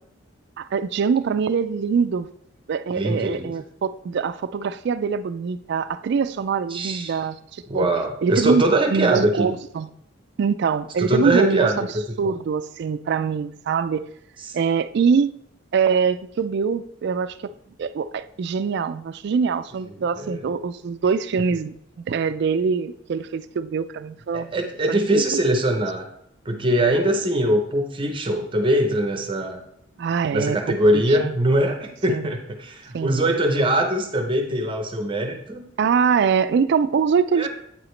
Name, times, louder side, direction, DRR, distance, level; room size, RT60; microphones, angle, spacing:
voice 1, 0.6-2.3 2.7-7.9 8.2-8.6 8.9-9.9 10.4-11.9 12.2-14.1 14.5-15.3 15.7-17.5 17.8-24.5 24.9-25.4 30.0-31.4 32.1-32.3 32.9-33.2 35.8-37.5, right 6 dB, 60° right, 13 dB, 0.3 m, -23 dB
voice 2, 2.9-3.5 6.7-7.2 7.7-9.5 11.0-12.3 14.5-14.6 20.2-20.4 24.3-26.1 26.5-29.6 30.3-35.6 37.4-37.5, right 1 dB, 25° right, 4 dB, 0.7 m, -22 dB
8.4 x 4.9 x 3.2 m, 0.69 s
head